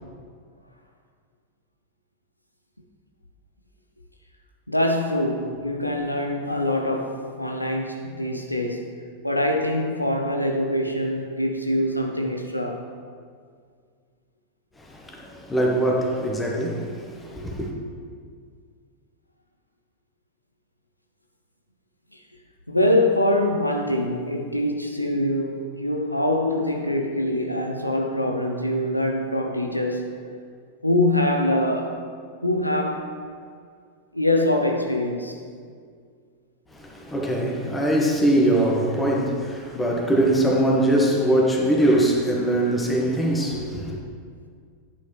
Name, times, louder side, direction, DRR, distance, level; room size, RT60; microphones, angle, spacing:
voice 1, 4.7-9.0 9.2-12.9 22.7-30.2 30.8-32.0 32.4-33.1 34.1-35.3, left 1 dB, 85° left, 0.7 m, -24 dB
voice 2, 14.9-16.9 17.2-17.7 36.9-44.0, right 1 dB, 10° left, 1.4 m, -22 dB
10.0 x 8.6 x 3.3 m
figure-of-eight pair, 90°, 0 cm